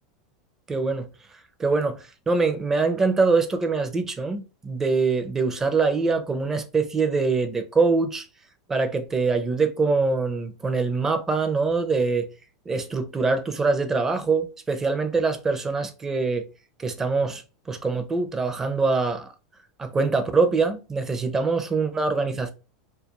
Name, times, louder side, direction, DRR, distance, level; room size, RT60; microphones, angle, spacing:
voice 1, 0.7-1.1 1.6-8.3 8.7-12.3 12.7-16.4 16.8-17.4 17.7-19.3 19.8-22.5, right 4 dB, 20° right, 0.5 m, -24 dB
2.3 x 2.2 x 2.9 m
hypercardioid pair, 110°, 2 cm